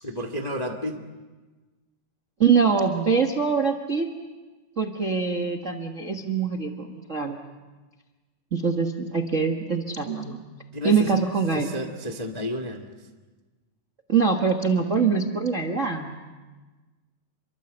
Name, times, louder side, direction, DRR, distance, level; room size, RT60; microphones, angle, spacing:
voice 1, 0.0-1.0 10.7-11.2 11.5-13.1, equal, 20° left, 4 dB, 1.3 m, -32 dB
voice 2, 2.4-4.1 4.8-7.4 8.5-10.4 10.8-11.7 14.1-16.2, right 5 dB, 70° right, 3 dB, 0.7 m, -23 dB
29.0 x 23.5 x 8.1 m, 1.3 s
omnidirectional pair, 4.0 m